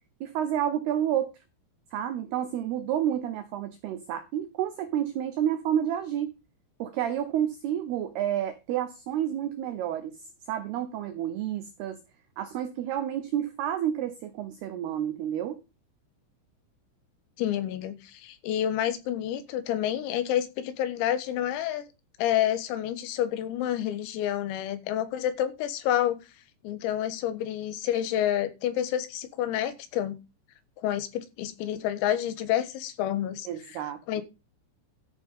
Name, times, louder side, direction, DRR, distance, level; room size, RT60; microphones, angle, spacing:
voice 1, 0.2-1.3 1.9-6.3 6.8-10.2 10.5-12.0 12.4-15.6 33.5-34.2, right 10 dB, 85° right, 9 dB, 2.2 m, -30 dB
voice 2, 17.4-21.9 22.2-26.2 26.6-30.2 30.8-33.5 33.7-33.8 34.1-34.2, left 11 dB, 85° left, 11 dB, 4.1 m, -29 dB
13.5 x 6.4 x 5.3 m, 0.27 s
omnidirectional pair, 6.0 m